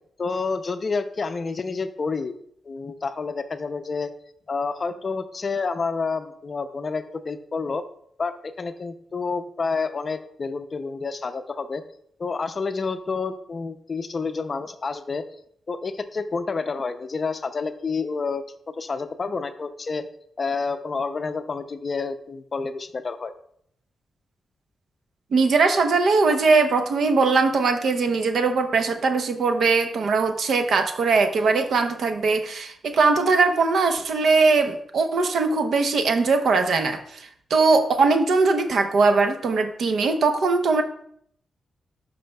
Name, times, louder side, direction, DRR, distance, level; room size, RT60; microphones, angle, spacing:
voice 1, 0.2-2.4 2.6-4.1 4.5-7.8 8.2-11.8 12.2-15.2 15.7-18.4 18.7-20.1 20.4-23.3, left 4 dB, 40° left, 9 dB, 0.5 m, -29 dB
voice 2, 25.3-40.8, right 4 dB, 70° right, 6 dB, 0.8 m, -20 dB
11.5 x 5.5 x 2.3 m, 0.68 s
wide cardioid pair, 110°, 0 cm